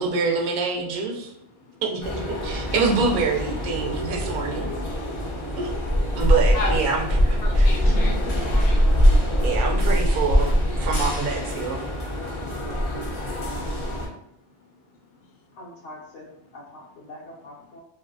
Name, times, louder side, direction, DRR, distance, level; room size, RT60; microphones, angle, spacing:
voice 1, 0.0-1.3 1.8-4.7 5.6-5.7 6.1-7.1 7.5-7.8 9.4-11.8, right 4 dB, 55° right, 1 dB, 0.6 m, -26 dB
sound 1, 2.0-14.1, equal, 45° left, 0.4 m, -23 dB
voice 2, 4.8-5.6 6.1-6.2 6.5-6.9 7.4-8.9 14.4-14.7 15.1-15.3, left 2 dB, 60° left, 0 dB, 0.7 m, -36 dB
voice 3, 7.0-7.3 15.6-17.8, left 1 dB, 85° left, -5 dB, 1.0 m, -44 dB
3.0 x 2.6 x 2.6 m, 0.80 s
omnidirectional pair, 1.2 m